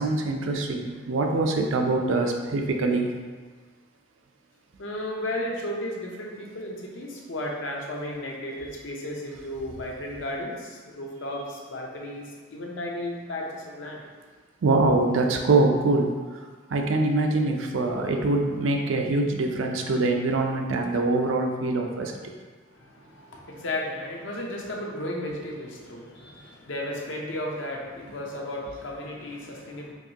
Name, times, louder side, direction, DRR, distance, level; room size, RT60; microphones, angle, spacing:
voice 1, 0.0-3.1 14.6-16.1 16.7-22.1, right 2 dB, 85° right, 3 dB, 0.5 m, -24 dB
voice 2, 4.8-14.0 22.7-29.9, left 1 dB, 75° left, -1 dB, 0.7 m, -34 dB
4.7 x 2.6 x 2.8 m, 1.5 s
head